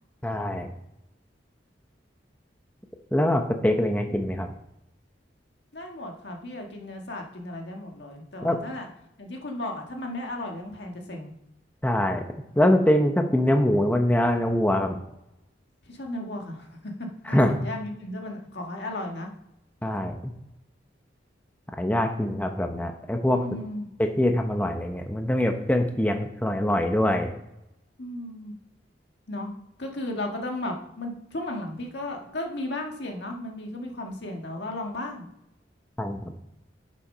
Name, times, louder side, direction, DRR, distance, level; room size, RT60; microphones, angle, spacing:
voice 1, 0.2-0.7 3.1-4.5 8.4-8.6 11.8-12.2 12.6-15.0 17.3-17.5 19.8-20.3 21.8-23.4 24.0-27.4 36.0-36.3, left 1 dB, 10° left, 4 dB, 0.7 m, -23 dB
voice 2, 5.7-8.9 9.2-11.3 15.8-19.3 23.3-23.9 28.0-28.5 29.3-29.5 29.8-35.3, left 1 dB, 70° left, 2 dB, 1.7 m, -35 dB
8.9 x 7.4 x 5.5 m, 0.85 s
head